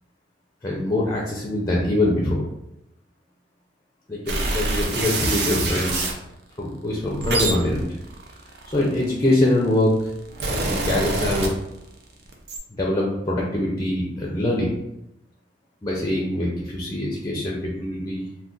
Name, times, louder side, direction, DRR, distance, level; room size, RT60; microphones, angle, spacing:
voice 1, 0.6-2.5 4.1-6.1 6.6-7.8 8.7-10.0 10.5-11.5 12.7-14.8 15.8-18.2, left 1 dB, 20° left, -2 dB, 0.4 m, -23 dB
sound 1, 4.3-6.2 6.9-9.3 10.0-12.0 12.3-12.6, right 2 dB, 65° right, 0.5 m, -26 dB
2.4 x 2.2 x 3.7 m, 0.83 s
head